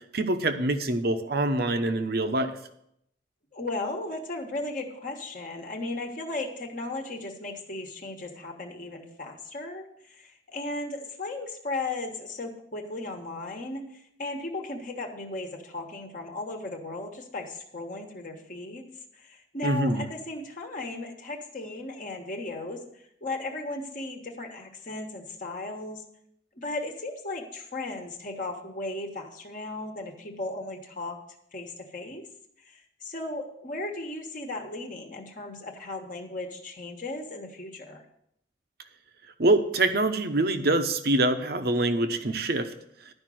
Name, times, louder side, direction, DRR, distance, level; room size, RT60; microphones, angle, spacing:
voice 1, 0.1-2.5 19.6-20.0 39.4-42.7, right 2 dB, 55° right, 8 dB, 0.9 m, -25 dB
voice 2, 3.5-18.9 19.1-26.0 26.6-31.2 31.5-32.2 32.6-38.0, left 2 dB, 45° left, 2 dB, 1.3 m, -36 dB
11.5 x 5.3 x 7.7 m, 0.75 s
head